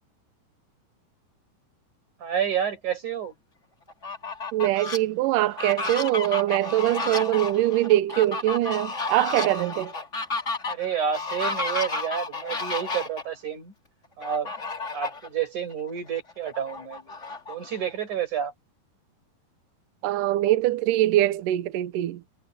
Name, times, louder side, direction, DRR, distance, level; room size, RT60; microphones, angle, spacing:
voice 1, 2.2-3.3 10.7-13.7 14.2-14.5 14.9-17.2 17.5-18.5, right 8 dB, 45° right, 7.3 m, -29 dB
Fowl, 3.9-5.0 5.5-13.2 14.2-15.3 15.7-15.8 16.2-17.9, left 3 dB, 25° left, 1.7 m, -32 dB
voice 2, 4.5-9.9 20.0-22.2, right 15 dB, 90° right, 1.9 m, -23 dB
omnidirectional pair, 5.1 m